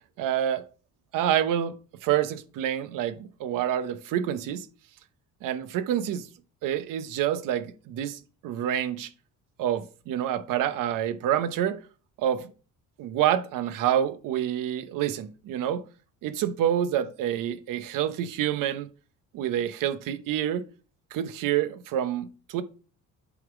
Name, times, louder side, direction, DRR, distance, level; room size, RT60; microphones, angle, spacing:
voice 1, 0.2-0.6 1.1-1.8 2.0-4.7 5.4-6.3 6.6-9.1 9.6-11.8 12.2-12.5 13.0-15.8 16.2-18.9 19.3-20.6 21.1-22.6, right 10 dB, 80° right, 0.9 m, -27 dB
8.2 x 3.8 x 5.9 m
cardioid pair, 170°, 32 cm